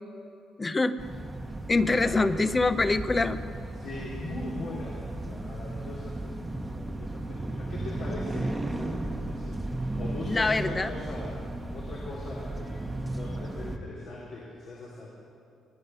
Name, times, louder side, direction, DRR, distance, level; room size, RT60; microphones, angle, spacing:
voice 1, 0.6-1.0 1.7-3.4 10.3-10.9, left 3 dB, 25° left, 12 dB, 0.6 m, -24 dB
sound 1, 1.0-13.8, right 2 dB, 15° right, 1.1 m, -35 dB
voice 2, 3.7-15.1, left 2 dB, 70° left, -5 dB, 2.7 m, -40 dB
23.0 x 9.5 x 5.5 m, 2.6 s
cardioid pair, 90°, 0 cm